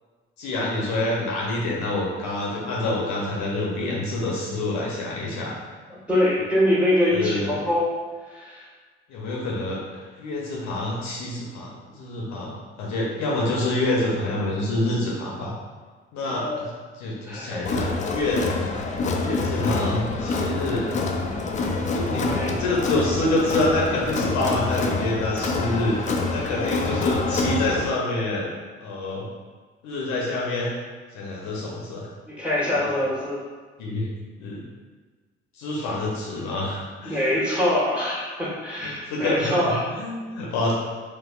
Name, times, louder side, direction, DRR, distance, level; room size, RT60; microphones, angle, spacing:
voice 1, 0.4-5.6 7.1-7.5 9.1-12.5 12.8-15.5 16.1-16.7 17.0-18.5 19.2-21.0 21.9-28.5 28.8-29.2 29.8-30.7 31.1-32.1 32.8-33.0 33.8-34.1 34.4-34.6 35.5-37.2 38.8-40.7, left 2 dB, 60° left, -4 dB, 0.7 m, -27 dB
voice 2, 6.1-7.9 8.3-8.6 16.2-16.7 17.3-17.6 22.3-22.5 32.3-33.4 37.0-39.8, left 1 dB, 5° right, -7 dB, 1.3 m, -24 dB
Crowd, 17.7-27.9, left 3 dB, 25° left, 0.4 m, -26 dB
4.0 x 2.4 x 2.3 m, 1.4 s
figure-of-eight pair, 45°, 31 cm